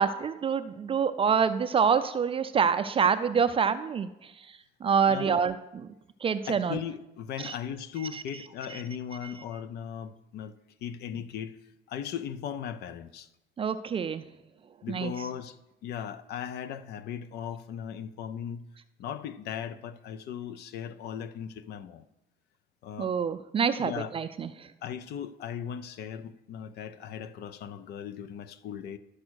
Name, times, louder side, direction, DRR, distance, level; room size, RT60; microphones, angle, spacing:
voice 1, 0.0-4.1 4.8-5.5 6.2-6.8 7.4-7.5 13.6-14.2 14.9-15.1 23.0-24.5, right 6 dB, 35° right, 0.4 m, -26 dB
voice 2, 5.0-5.4 6.5-10.5 10.8-11.6 11.9-13.3 14.8-15.6 15.8-18.6 19.0-22.1 22.8-23.1 23.8-24.1 24.8-29.0, left 8 dB, 75° left, 0.6 m, -38 dB
11.5 x 4.9 x 6.3 m
cardioid pair, 110°, 17 cm